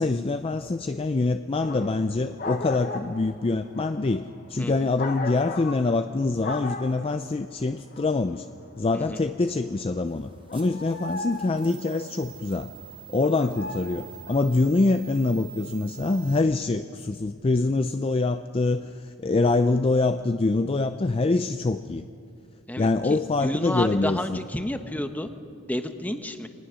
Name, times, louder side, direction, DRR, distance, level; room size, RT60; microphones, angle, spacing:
voice 1, 0.0-8.5 8.8-12.7 13.1-22.0 22.8-24.4, left 3 dB, 25° left, 9 dB, 0.4 m, -25 dB
sound 1, 1.6-2.0 2.4-6.1 6.4-7.3 7.7-9.7 10.1-12.1 13.0-14.5, left 3 dB, 45° left, 1.1 m, -36 dB
voice 2, 4.6-4.9 8.9-9.2 22.7-25.3 25.7-26.5, left 1 dB, 10° left, 7 dB, 0.9 m, -31 dB
sound 2, 10.1-16.4, right 12 dB, 25° right, 0.9 m, -47 dB
22.5 x 18.5 x 6.3 m, 2.4 s
head